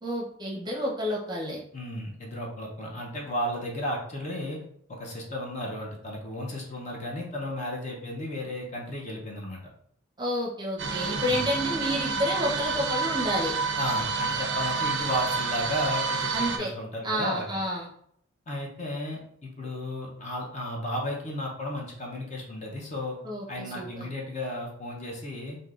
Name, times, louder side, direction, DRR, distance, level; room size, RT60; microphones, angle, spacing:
voice 1, 0.0-1.6 10.2-13.6 16.3-16.7 17.0-17.9 23.2-24.1, equal, 20° right, -3 dB, 0.6 m, -30 dB
voice 2, 1.7-4.6 4.9-9.6 11.1-11.5 13.8-17.6 18.5-23.2 23.5-25.6, left 1 dB, 35° left, -1 dB, 0.6 m, -34 dB
sound 1, 10.8-16.6, right 4 dB, 55° right, 0.4 m, -29 dB
3.5 x 2.6 x 2.4 m, 0.69 s
head